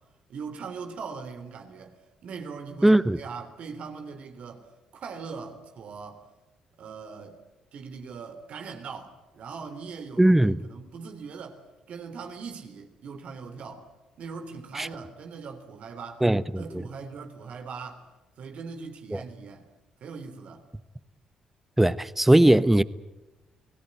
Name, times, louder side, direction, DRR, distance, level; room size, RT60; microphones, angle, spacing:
voice 1, 0.3-4.7 4.9-6.2 6.8-7.4 7.7-13.9 14.2-16.2 16.6-18.0 18.4-19.7 20.0-20.7, right 5 dB, 65° right, 3.5 m, -40 dB
voice 2, 2.8-3.2 10.2-10.6 14.8-14.9 16.2-16.8 19.1-19.2 21.8-22.8, right 1 dB, 10° right, 1.1 m, -19 dB
29.5 x 17.5 x 9.8 m
supercardioid pair, 60°, 2 cm